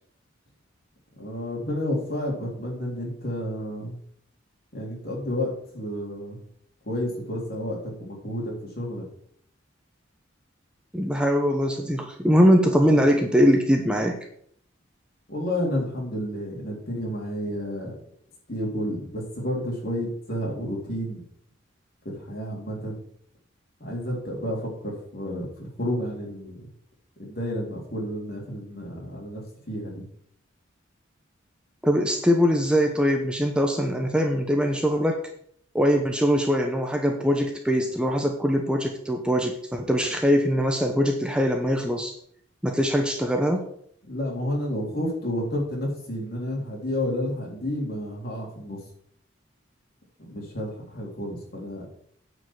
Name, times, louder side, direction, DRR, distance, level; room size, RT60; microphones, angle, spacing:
voice 1, 1.2-4.0 4.7-6.4 6.9-9.0 15.3-17.9 18.5-21.2 22.1-23.0 23.8-26.6 27.2-29.4 29.7-30.0 44.1-48.8 50.2-51.9, left 1 dB, 50° left, -2 dB, 3.8 m, -31 dB
voice 2, 10.9-14.2 31.8-35.2 35.7-42.1 42.6-43.6, equal, 5° right, 3 dB, 0.9 m, -22 dB
9.7 x 5.4 x 7.4 m, 0.65 s
head